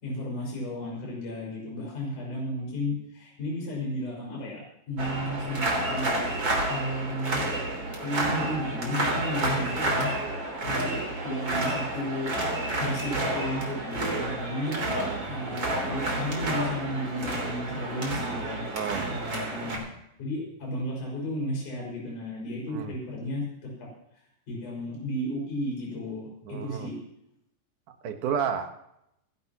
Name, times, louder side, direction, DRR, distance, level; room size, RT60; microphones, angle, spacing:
voice 1, 0.0-6.1 6.7-7.6 8.0-10.1 10.6-12.4 12.8-14.8 15.3-18.6 19.1-23.7 24.5-27.0, left 1 dB, 60° left, -3 dB, 7.0 m, -33 dB
sound 1, 5.0-19.8, right 2 dB, 35° right, 3.9 m, -30 dB
voice 2, 15.0-15.6 18.7-19.1 22.7-22.9 26.4-26.9 28.0-28.8, right 7 dB, 70° right, 6 dB, 2.6 m, -32 dB
26.5 x 12.0 x 3.0 m, 0.80 s
omnidirectional pair, 4.0 m